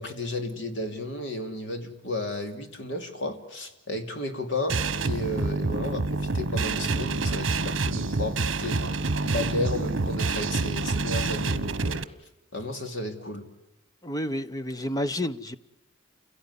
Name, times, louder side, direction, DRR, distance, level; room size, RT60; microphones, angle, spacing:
voice 1, 0.0-4.8 5.0-12.0 12.5-13.5, left 2 dB, 60° left, 6 dB, 2.9 m, -33 dB
sound 1, 4.7-12.0, right 3 dB, 65° right, 1.2 m, -27 dB
voice 2, 14.0-15.6, left 1 dB, 15° left, 13 dB, 0.8 m, -30 dB
28.5 x 17.0 x 9.7 m, 1.0 s
head